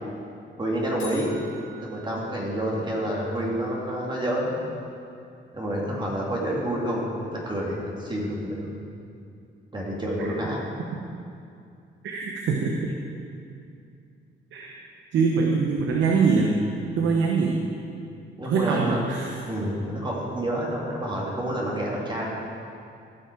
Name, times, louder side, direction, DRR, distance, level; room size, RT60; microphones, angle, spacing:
voice 1, 0.6-1.4 1.8-4.6 5.5-8.7 9.7-10.6 18.4-19.0 19.4-22.3, right 1 dB, 25° right, -4 dB, 2.2 m, -28 dB
sound 1, 1.0-3.1, left 1 dB, 70° left, 2.9 m, -45 dB
voice 2, 12.0-12.9 14.5-14.8 15.1-16.6 17.0-17.6 18.4-19.4, right 4 dB, 75° right, 0 dB, 1.0 m, -23 dB
16.0 x 6.0 x 4.5 m, 2.5 s
cardioid pair, 90°, 20 cm